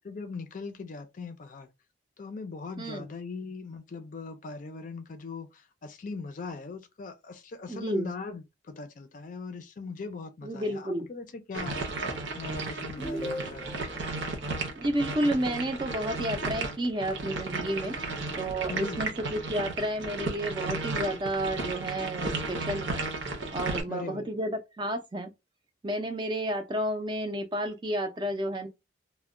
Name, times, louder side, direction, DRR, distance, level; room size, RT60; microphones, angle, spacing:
voice 1, 0.0-1.7 2.2-11.8 12.4-13.8 18.7-19.1 23.9-24.4, left 4 dB, 45° left, 0.4 m, -40 dB
voice 2, 2.8-3.1 7.7-8.1 10.4-11.1 14.8-18.0 18.4-23.0 23.5-25.3 25.8-28.7, right 1 dB, 25° right, 0.4 m, -31 dB
sound 1, 11.5-23.8, right 3 dB, 75° right, 0.7 m, -34 dB
sound 2, 13.0-14.0, equal, 5° left, 0.7 m, -36 dB
2.2 x 2.1 x 3.5 m
head